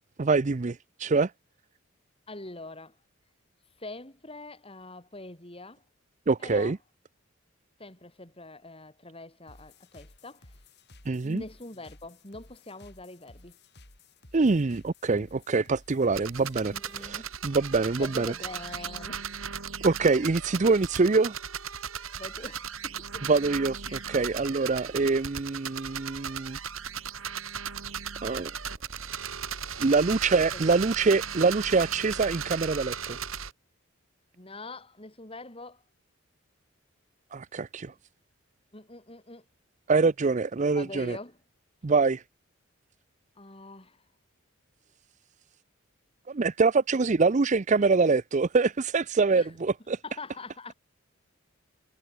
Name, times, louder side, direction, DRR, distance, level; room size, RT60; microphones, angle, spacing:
voice 1, 0.2-1.3 6.3-6.8 11.1-11.4 14.3-16.7 17.0-18.3 19.8-21.3 23.3-26.6 28.2-28.5 29.8-33.2 37.3-37.9 39.9-41.2 41.8-42.2 46.3-50.0, right 4 dB, 35° right, 0.5 m, -25 dB
voice 2, 2.3-3.0 3.8-5.8 6.4-6.7 7.8-10.5 11.2-13.6 16.4-17.3 18.0-19.3 22.2-23.3 23.9-24.1 30.5-30.8 34.4-35.8 38.7-39.4 40.8-41.4 43.4-44.0 49.4-49.5 50.0-50.7, left 2 dB, 25° left, 4.0 m, -44 dB
sound 1, 9.5-17.1, left 2 dB, 55° left, 6.1 m, -55 dB
sound 2, 16.1-33.5, right 7 dB, 85° right, 4.6 m, -37 dB
head